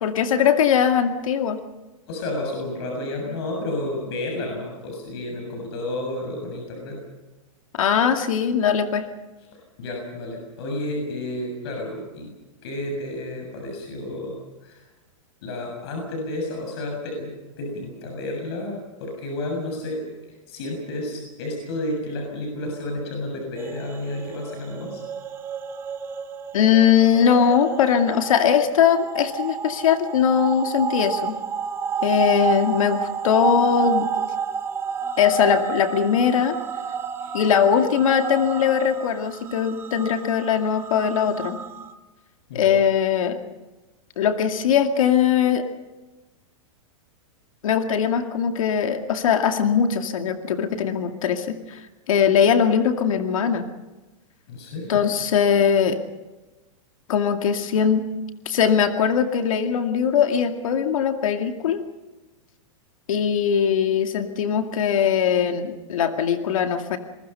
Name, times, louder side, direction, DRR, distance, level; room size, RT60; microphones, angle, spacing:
voice 1, 0.0-1.6 7.8-9.1 26.5-31.4 32.0-34.1 35.2-36.6 37.3-41.6 42.5-43.4 44.2-45.6 47.6-51.8 52.1-53.7 54.9-56.0 57.1-58.0 58.5-61.8 63.1-67.0, left 8 dB, 75° left, 5 dB, 2.3 m, -20 dB
voice 2, 2.1-7.0 9.8-12.3 12.6-14.8 15.4-25.0 37.2-37.3 42.5-42.7 54.5-55.0, left 1 dB, 50° left, 1 dB, 7.1 m, -31 dB
sound 1, 23.6-41.9, right 7 dB, 15° right, 1.0 m, -30 dB
27.0 x 23.0 x 5.7 m, 1.1 s
supercardioid pair, 165°, 17 cm